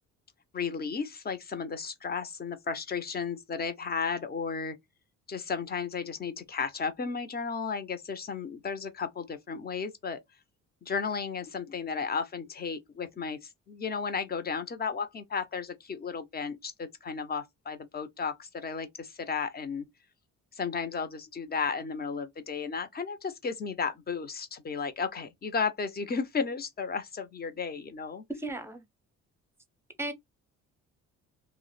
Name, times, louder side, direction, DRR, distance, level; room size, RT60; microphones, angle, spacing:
voice 1, 0.5-4.8 5.3-10.2 10.8-19.9 20.5-28.2, left 5 dB, 30° left, 0.7 m, -34 dB
voice 2, 28.3-28.8 30.0-30.1, right 2 dB, 10° right, 0.8 m, -35 dB
2.4 x 2.1 x 3.8 m
cardioid pair, 90°, 30 cm